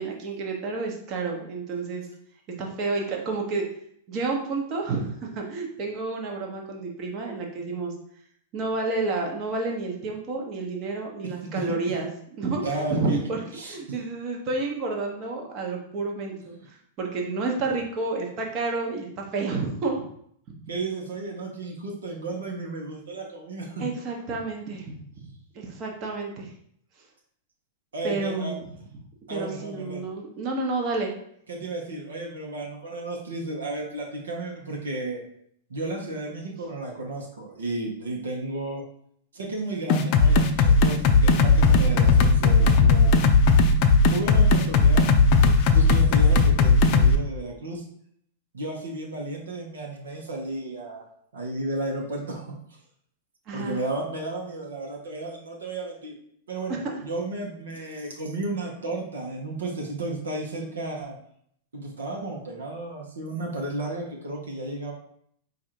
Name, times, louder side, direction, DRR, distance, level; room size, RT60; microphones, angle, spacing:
voice 1, 0.0-2.1 2.6-3.6 4.1-7.9 8.5-12.1 12.4-20.0 23.8-25.3 25.5-26.5 28.0-28.6 29.3-31.1 53.5-53.8 56.7-56.9, right 3 dB, 35° right, 0 dB, 1.1 m, -30 dB
voice 2, 12.6-13.2 13.5-13.8 16.5-16.7 20.7-23.9 27.9-28.6 29.3-30.1 31.5-35.2 35.7-38.8 39.3-43.2 44.1-45.1 45.4-47.8 48.5-51.0 51.3-52.8 53.5-56.1 56.5-61.2 61.7-64.9, right 2 dB, 70° right, 0 dB, 1.0 m, -33 dB
sound 1, 39.9-47.2, left 3 dB, 45° left, 0.5 m, -17 dB
4.7 x 2.5 x 4.4 m, 0.68 s
figure-of-eight pair, 100°, 0 cm